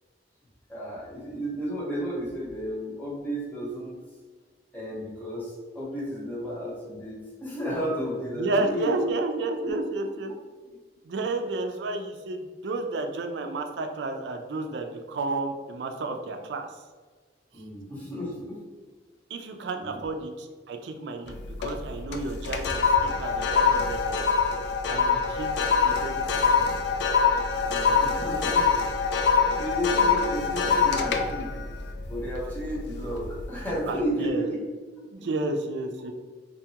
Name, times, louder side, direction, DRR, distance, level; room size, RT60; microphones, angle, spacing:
voice 1, 0.7-4.0 4.7-9.1 9.6-9.7 17.5-18.6 19.8-20.1 27.6-28.9 29.2-31.6 32.1-34.6 35.2-35.3, equal, 10° left, -6 dB, 0.8 m, -33 dB
voice 2, 8.3-10.3 11.0-16.7 19.3-24.3 24.9-26.3 26.6-26.7 33.9-34.5 35.1-36.1, right 3 dB, 75° right, 5 dB, 0.3 m, -31 dB
sound 1, 21.3-21.8 22.1-32.7 33.1-33.4, left 5 dB, 70° left, 0.3 m, -24 dB
2.7 x 2.3 x 2.7 m, 1.4 s
head